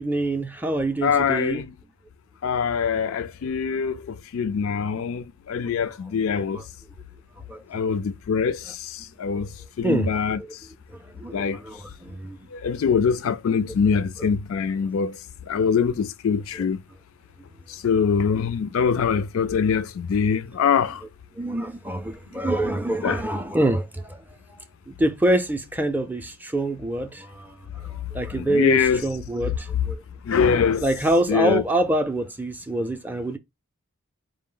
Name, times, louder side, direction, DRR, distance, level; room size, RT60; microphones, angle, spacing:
voice 1, 0.0-1.6 4.8-4.9 5.7-5.8 6.4-6.6 7.5-7.6 8.6-8.7 9.3-9.5 9.8-10.1 10.4-10.5 10.9-12.4 16.5-16.6 21.4-24.2 24.9-30.0 30.8-33.4, right 1 dB, 10° right, 0.4 m, -26 dB
voice 2, 1.0-1.7 2.4-6.6 7.7-9.5 9.8-10.4 11.3-11.6 12.5-15.2 15.5-16.8 17.7-21.0 23.0-23.2 28.4-29.0 30.3-30.8 31.3-31.6, left 6 dB, 60° left, 0.3 m, -23 dB
4.6 x 2.0 x 3.7 m
head